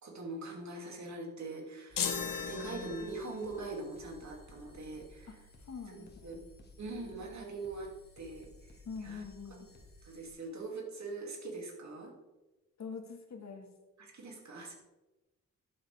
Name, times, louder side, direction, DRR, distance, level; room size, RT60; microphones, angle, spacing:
voice 1, 0.0-5.5 5.9-6.4 6.8-9.2 10.0-12.1 14.0-14.7, right 2 dB, 55° right, 0 dB, 2.6 m, -43 dB
sound 1, 1.9-10.3, left 1 dB, 30° left, 1.9 m, -57 dB
sound 2, 2.0-3.4, left 7 dB, 80° left, 1.1 m, -36 dB
voice 2, 2.5-2.9 5.3-5.4 5.6-6.4 8.9-9.7 12.8-13.7, left 5 dB, 55° left, 2 dB, 1.8 m, -44 dB
11.5 x 7.9 x 3.5 m, 1.1 s
wide cardioid pair, 110°, 33 cm